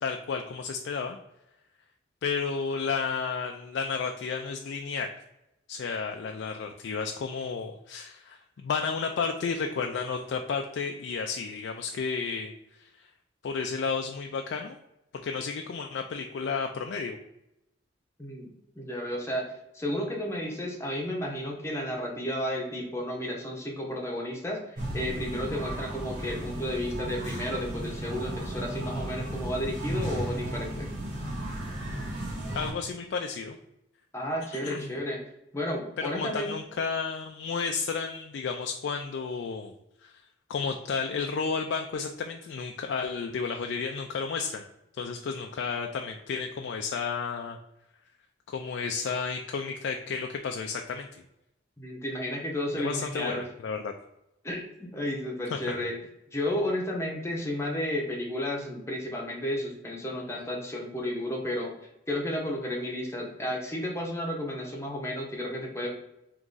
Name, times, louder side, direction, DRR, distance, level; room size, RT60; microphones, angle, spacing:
voice 1, 0.0-1.2 2.2-5.1 5.7-12.5 12.8-13.1 13.4-14.8 15.2-17.2 32.5-33.6 34.5-34.9 36.0-39.7 40.0-40.1 40.5-44.6 45.0-47.6 48.5-51.1 52.8-53.9 55.5-55.7, left 5 dB, 70° left, 3 dB, 0.3 m, -32 dB
voice 2, 18.2-19.5 19.7-30.9 34.1-35.2 35.5-36.5 51.8-53.4 54.4-55.9 56.3-61.7 62.1-65.9, left 1 dB, 15° left, -1 dB, 0.7 m, -32 dB
sound 1, 24.8-32.7, right 1 dB, 40° right, 1.2 m, -34 dB
3.6 x 3.0 x 3.8 m, 0.87 s
head